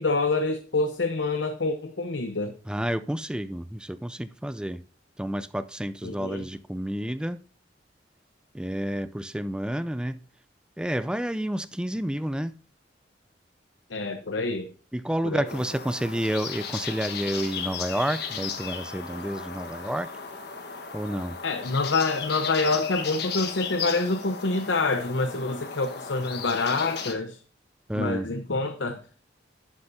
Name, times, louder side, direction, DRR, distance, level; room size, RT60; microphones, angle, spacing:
voice 1, 0.0-2.5 6.0-6.4 13.9-14.7 15.2-15.4 21.4-27.4 27.9-29.0, left 3 dB, 80° left, 0.8 m, -27 dB
voice 2, 2.7-4.8 5.2-7.4 8.5-10.2 10.8-12.5 14.9-20.1 20.9-21.4 27.9-28.3, right 1 dB, 5° right, 0.4 m, -30 dB
sound 1, 15.4-27.1, left 6 dB, 60° left, 1.3 m, -36 dB
11.5 x 9.8 x 2.7 m
head